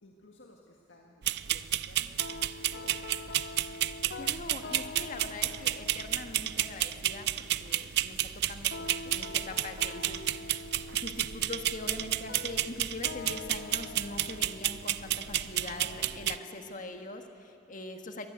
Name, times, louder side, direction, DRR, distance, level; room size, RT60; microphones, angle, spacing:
voice 1, 0.0-3.1 15.5-16.2, left 1 dB, 80° left, 0 dB, 1.8 m, -56 dB
sound 1, 1.2-16.4, right 13 dB, 60° right, 0.5 m, -32 dB
sound 2, 2.2-17.1, left 4 dB, 65° left, 0.5 m, -46 dB
voice 2, 3.9-10.5 10.9-18.3, left 2 dB, 45° left, 5 dB, 1.6 m, -42 dB
23.5 x 19.0 x 8.1 m, 2.6 s
head